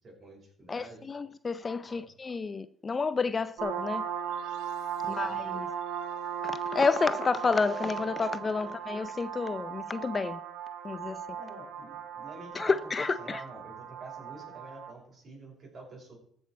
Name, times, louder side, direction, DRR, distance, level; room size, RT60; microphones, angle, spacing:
voice 1, 0.0-1.0 1.9-2.1 5.0-5.4 8.6-8.7 11.4-12.8 13.2-16.2, right 2 dB, 45° right, 5.7 m, -48 dB
voice 2, 0.7-4.0 5.1-5.7 6.4-10.4 10.8-11.2 12.5-13.4, left 4 dB, 30° left, 0.5 m, -30 dB
sound 1, 3.6-14.9, right 8 dB, 85° right, 1.3 m, -37 dB
14.5 x 6.2 x 4.6 m
supercardioid pair, 80°, 0 cm